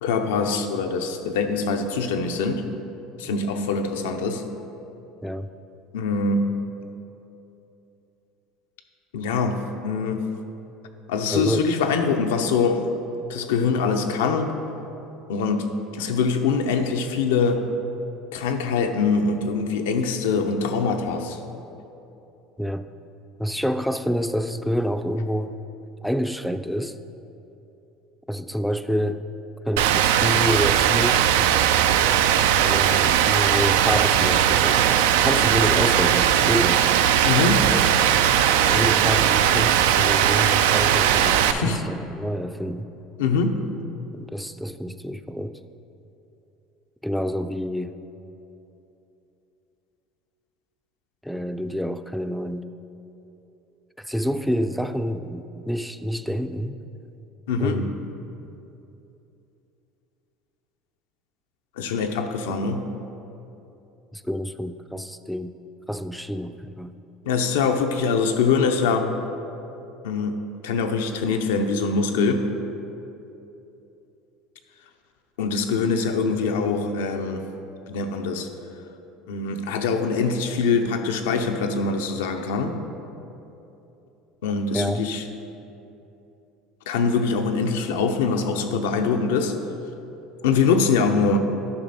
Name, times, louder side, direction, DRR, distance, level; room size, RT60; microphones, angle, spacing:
voice 1, 0.0-2.6 3.2-4.4 5.9-6.5 9.1-10.2 11.1-12.9 13.3-14.5 15.3-17.6 18.3-21.4 37.2-37.7 41.4-41.9 43.2-43.7 57.5-57.9 61.8-62.9 67.3-69.1 70.0-72.5 75.4-77.4 77.9-78.5 79.3-82.8 84.4-85.2 86.9-89.5 90.4-91.4, left 4 dB, 85° left, 5 dB, 0.6 m, -23 dB
voice 2, 11.3-11.7 22.6-22.9 23.4-25.5 26.0-27.0 28.3-29.2 29.7-31.3 32.6-36.8 37.6-37.8 38.7-42.9 44.1-45.6 47.0-47.9 51.2-52.7 54.0-56.8 57.6-57.9 62.5-62.6 64.1-65.5 65.9-66.9 84.7-85.0, equal, ahead, 10 dB, 0.4 m, -28 dB
Rain, 29.8-41.5, right 10 dB, 80° right, 0.3 m, -19 dB
9.7 x 5.8 x 4.1 m, 2.9 s
supercardioid pair, 90°, 0 cm